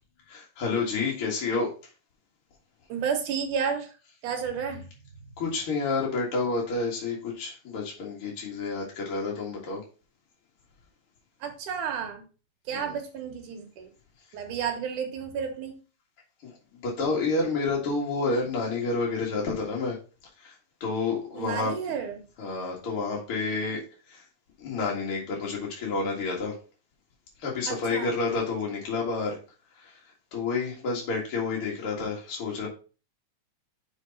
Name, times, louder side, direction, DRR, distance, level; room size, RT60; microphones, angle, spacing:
voice 1, 0.3-1.7 5.4-9.8 12.7-13.0 16.4-20.0 20.4-20.6 20.8-21.7 22.4-23.8 24.1-24.2 24.6-26.5 27.4-29.4 29.8-30.0 30.3-32.7, left 3 dB, 50° left, -3 dB, 2.5 m, -29 dB
voice 2, 2.9-3.9 4.2-4.9 11.4-12.2 12.7-13.9 14.3-15.8 21.4-22.2 27.7-28.1, right 7 dB, 85° right, 5 dB, 2.6 m, -31 dB
6.5 x 4.6 x 5.3 m, 0.35 s
omnidirectional pair, 3.5 m